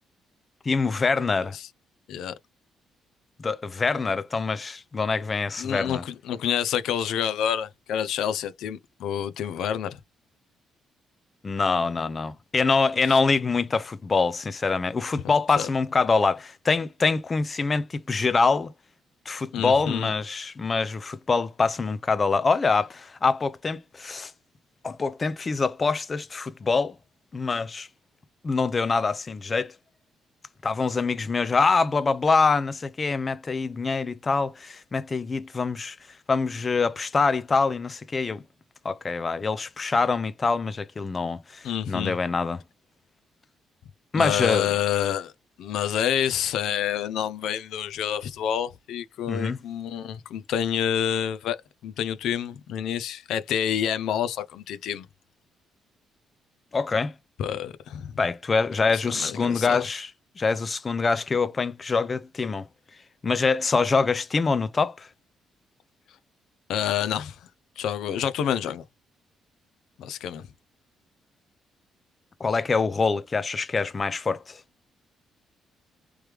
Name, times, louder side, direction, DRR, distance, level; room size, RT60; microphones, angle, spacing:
voice 1, 0.6-1.6 3.4-6.0 11.4-18.7 19.3-24.3 24.8-27.0 27.3-27.9 28.4-29.7 30.6-36.0 36.3-38.4 38.8-42.6 44.1-44.7 49.3-49.6 56.7-57.1 58.2-60.1 60.4-62.7 63.2-65.1 72.4-74.6, left 4 dB, 35° left, 0.5 m, -25 dB
voice 2, 5.6-10.0 13.0-13.2 15.6-15.7 19.5-20.1 41.6-42.2 44.1-45.3 45.6-51.6 51.8-55.1 57.4-58.1 58.9-59.9 66.7-67.4 67.8-68.8 70.0-70.5, left 9 dB, 80° left, 0.5 m, -28 dB
3.2 x 3.1 x 3.4 m
cardioid pair, 90°, 0 cm